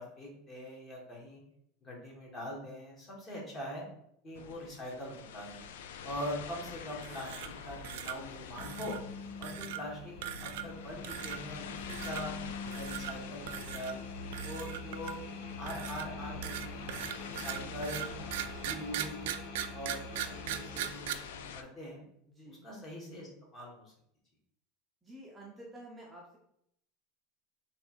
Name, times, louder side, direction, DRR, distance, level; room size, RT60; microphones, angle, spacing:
voice 1, 0.0-1.4 1.8-3.8 4.2-5.6 6.0-9.0 9.4-10.1 10.4-12.3 12.7-14.0 14.4-15.2 15.6-18.1 18.6-19.4 19.7-22.0 22.5-23.9, equal, 25° left, -2 dB, 1.3 m, -43 dB
sound 1, 4.3-21.6, left 7 dB, 90° left, 0.3 m, -48 dB
sound 2, 7.0-7.6 7.8-8.2 8.6-9.0 9.4-9.8 10.2-10.8 11.0-11.4 11.9-12.2 12.7-13.1 13.5-13.9 14.3-15.3 15.7-21.1, right 11 dB, 75° right, 0.3 m, -39 dB
sound 3, 8.6-20.9, left 3 dB, 60° left, 0.7 m, -44 dB
voice 2, 17.3-17.7 22.3-22.7 25.0-26.4, right 1 dB, 10° right, -3 dB, 0.6 m, -51 dB
3.4 x 2.4 x 4.3 m, 0.74 s
supercardioid pair, 150°, 0 cm